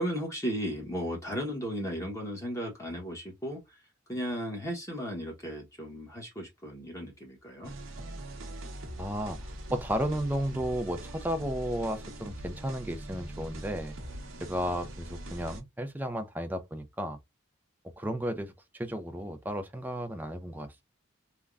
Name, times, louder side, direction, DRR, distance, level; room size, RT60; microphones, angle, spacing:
voice 1, 0.0-3.8 4.1-7.7, equal, 15° left, 0.9 m, -35 dB
sound 1, 7.6-15.6, right 1 dB, 80° right, 0.8 m, -42 dB
voice 2, 9.0-13.9 14.4-17.2 18.0-20.7, equal, 10° right, 0.3 m, -33 dB
3.3 x 2.1 x 2.3 m
head